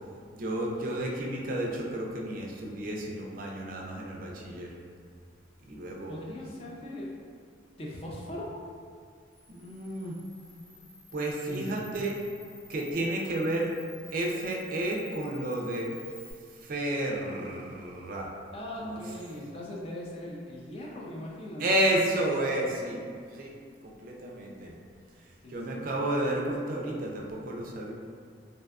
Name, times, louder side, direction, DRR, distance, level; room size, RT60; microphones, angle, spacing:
voice 1, 0.3-4.7 5.6-6.2 9.5-10.1 11.1-12.2 12.7-13.7 14.1-15.9 16.5-18.3 18.8-19.0 21.6-23.0 23.3-23.5 23.8-24.7 25.5-27.9, right 1 dB, 50° right, -1 dB, 0.3 m, -31 dB
voice 2, 6.1-7.1 7.8-8.5 11.5-11.9 18.5-21.8 25.4-25.9, left 1 dB, 30° left, -3 dB, 0.3 m, -40 dB
Camera, 9.3-16.3, left 2 dB, 50° left, 0.8 m, -52 dB
2.6 x 2.3 x 2.3 m, 2.2 s
head